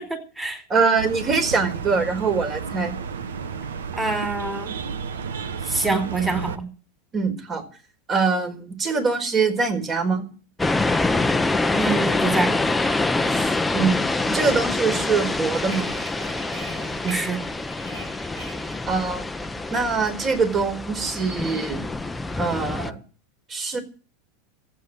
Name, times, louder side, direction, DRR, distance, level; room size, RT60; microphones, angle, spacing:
voice 1, 0.0-0.6 4.0-4.7 5.6-6.7 11.7-12.6 17.0-17.4, right 3 dB, 10° right, 5 dB, 4.3 m, -26 dB
voice 2, 0.7-3.0 7.1-7.6 8.1-10.2 13.3-15.9 18.9-19.2 19.7-21.8 22.4-23.0 23.5-23.8, right 4 dB, 30° right, 5 dB, 4.8 m, -23 dB
sound 1, 1.0-6.6, right 6 dB, 80° right, 1.2 m, -32 dB
sound 2, 10.6-22.9, left 2 dB, 10° left, 0.9 m, -25 dB
sound 3, 14.8-19.7, right 3 dB, 60° right, 7.5 m, -42 dB
14.5 x 8.7 x 9.8 m, 0.38 s
hypercardioid pair, 90°, 0 cm